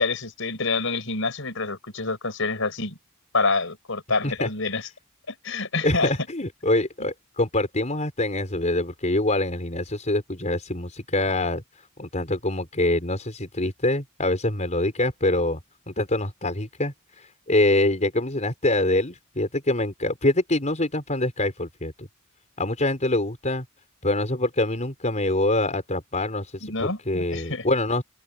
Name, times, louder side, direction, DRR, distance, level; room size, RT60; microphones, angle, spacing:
voice 1, 0.0-3.0 3.3-4.9 5.3-6.1 26.6-27.6, left 3 dB, 65° left, 7.2 m, -27 dB
voice 2, 5.8-15.6 15.9-22.1 22.6-23.6 24.0-28.0, left 2 dB, 35° left, 4.9 m, -25 dB
head